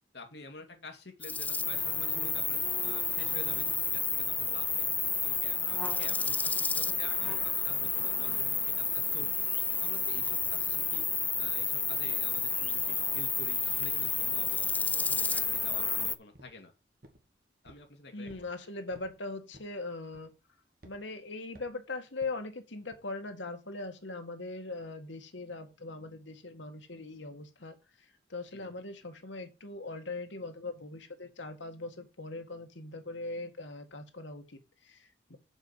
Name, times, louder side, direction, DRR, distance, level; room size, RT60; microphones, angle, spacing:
voice 1, 0.1-4.9 5.2-9.4 9.8-11.0 11.4-16.7 17.6-18.5 28.5-28.7 35.3-35.4, left 3 dB, 70° left, 5 dB, 2.3 m, -49 dB
sound 1, 1.2-16.1, left 4 dB, 10° left, 0.4 m, -30 dB
sound 2, 13.1-13.3 13.8-14.1 14.4-14.7 15.1-16.0 16.3-16.6 17.0-17.3 17.6-17.9 18.3-18.5 18.9-19.1 19.5-19.8 20.1-20.4 20.8-21.0 21.5-21.8 22.2-22.4 22.9-23.1, right 1 dB, 50° right, 2.0 m, -56 dB
voice 2, 18.1-20.3 20.8-27.8 28.3-35.4, left 3 dB, 90° left, 6 dB, 1.7 m, -40 dB
7.3 x 5.2 x 7.2 m, 0.29 s
head